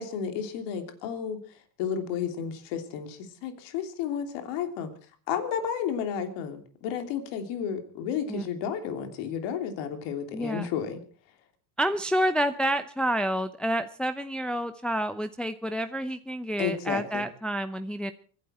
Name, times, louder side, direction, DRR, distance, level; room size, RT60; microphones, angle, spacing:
voice 1, 0.0-4.9 5.3-11.0 16.6-17.2, left 8 dB, 75° left, 6 dB, 3.1 m, -32 dB
voice 2, 10.3-10.7 11.8-18.1, right 1 dB, ahead, 8 dB, 0.7 m, -29 dB
24.5 x 11.0 x 4.4 m, 0.40 s
supercardioid pair, 100°, 44 cm